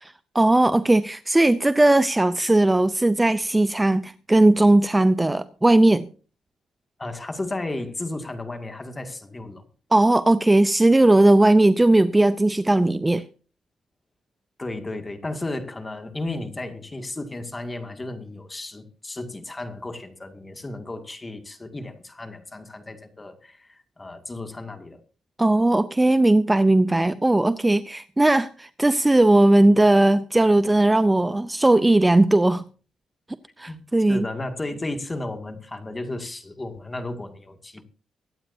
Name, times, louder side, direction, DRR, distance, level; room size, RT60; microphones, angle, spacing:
voice 1, 0.0-6.1 9.9-13.2 25.4-32.6 33.6-34.3, right 2 dB, 15° right, 0.6 m, -18 dB
voice 2, 7.0-9.6 14.6-23.7 24.0-25.0 33.7-33.8 34.1-37.8, left 2 dB, 20° left, 2.2 m, -34 dB
24.0 x 8.9 x 2.7 m
cardioid pair, 80°, 0 cm